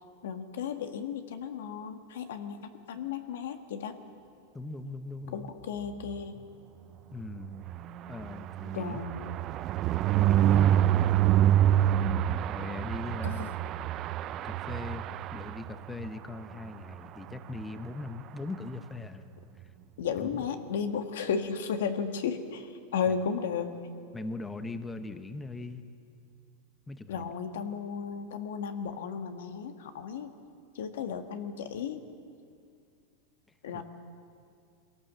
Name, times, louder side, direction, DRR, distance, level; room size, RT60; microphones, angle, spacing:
voice 1, 0.2-3.9 5.3-6.4 8.7-9.3 13.2-13.3 20.0-23.8 27.1-30.4 30.7-32.0 33.6-33.8, left 6 dB, 80° left, 7 dB, 1.6 m, -34 dB
voice 2, 4.5-5.5 7.1-7.6 8.1-9.0 10.2-11.1 12.5-13.5 14.4-19.3 19.5-19.7 20.2-20.4 23.1-23.2 24.1-25.8 26.9-27.3 33.7-33.8, left 3 dB, 10° left, 10 dB, 0.9 m, -40 dB
sound 1, 7.3-16.1 16.5-16.7 16.9-17.0 17.3-17.6, right 12 dB, 35° right, 0.4 m, -27 dB
23.0 x 17.5 x 7.5 m, 2.4 s
supercardioid pair, 145°, 0 cm